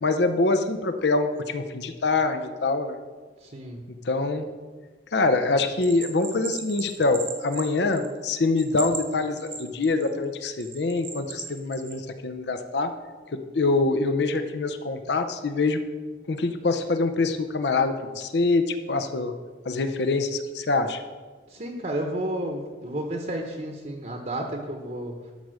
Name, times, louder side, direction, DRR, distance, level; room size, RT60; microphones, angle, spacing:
voice 1, 0.0-3.0 4.0-4.5 5.1-12.9 13.3-15.8 16.3-19.3 19.6-21.0, left 3 dB, 70° left, 8 dB, 0.6 m, -25 dB
voice 2, 3.4-3.8 21.5-25.2, right 1 dB, 40° right, 2 dB, 0.9 m, -32 dB
Bell, 5.8-8.2 8.6-10.1 10.6-12.0, right 5 dB, 85° right, 1.4 m, -36 dB
12.5 x 4.8 x 6.3 m, 1.4 s
head